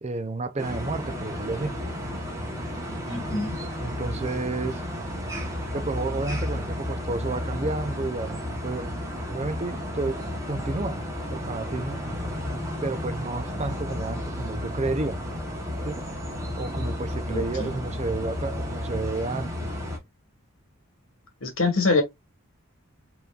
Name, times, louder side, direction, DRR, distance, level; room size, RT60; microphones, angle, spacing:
voice 1, 0.0-1.8 3.8-4.8 5.7-8.9 9.3-12.0 12.8-15.2 15.8-16.0 16.5-19.7, right 3 dB, 30° right, 0.5 m, -31 dB
sound 1, 0.6-20.0, left 1 dB, 15° right, 1.1 m, -32 dB
voice 2, 3.1-3.6 17.3-17.8 21.4-22.0, left 3 dB, 65° left, 1.7 m, -25 dB
5.1 x 3.0 x 2.4 m
head